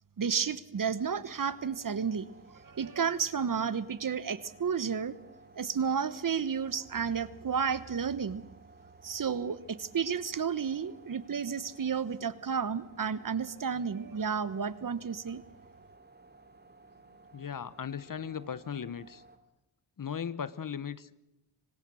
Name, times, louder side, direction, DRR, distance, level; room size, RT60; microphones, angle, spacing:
voice 1, 0.2-2.3 2.6-5.2 5.6-8.4 9.0-15.4, right 6 dB, 45° right, 16 dB, 1.2 m, -32 dB
sound 1, 1.0-19.4, right 2 dB, 20° right, 3.0 m, -57 dB
voice 2, 17.3-19.2 20.0-21.1, left 7 dB, 45° left, 17 dB, 1.1 m, -37 dB
25.5 x 19.0 x 6.3 m, 0.89 s
supercardioid pair, 50°, 46 cm